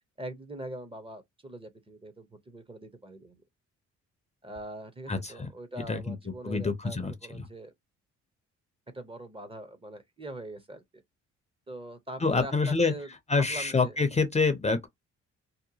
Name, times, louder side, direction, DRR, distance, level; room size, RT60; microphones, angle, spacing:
voice 1, 0.2-3.4 4.4-7.7 8.9-11.0 11.7-13.1 13.3-13.9, right 1 dB, 20° right, 0.6 m, -42 dB
voice 2, 5.1-5.5 5.9-6.2 6.4-7.1 7.4-7.5 12.2-12.9 13.3-14.9, left 4 dB, 20° left, 0.5 m, -26 dB
2.8 x 2.2 x 2.6 m
cardioid pair, 90°, 30 cm